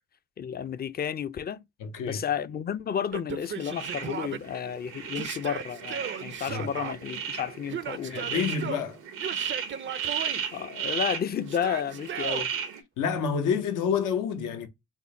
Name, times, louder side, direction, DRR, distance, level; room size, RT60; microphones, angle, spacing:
voice 1, 0.4-1.6 2.0-8.4 10.5-12.5, left 8 dB, 30° left, 0.4 m, -32 dB
voice 2, 1.8-2.3 6.5-6.8 8.0-9.0 13.0-14.7, left 6 dB, 85° left, 0.7 m, -28 dB
Yell, 3.1-4.4 5.1-6.9 7.7-8.9 9.2-10.4 11.5-12.5, right 8 dB, 40° right, 0.4 m, -36 dB
sound 1, 3.6-12.8, right 8 dB, 85° right, 0.8 m, -35 dB
3.6 x 2.1 x 3.6 m
supercardioid pair, 60°, 30 cm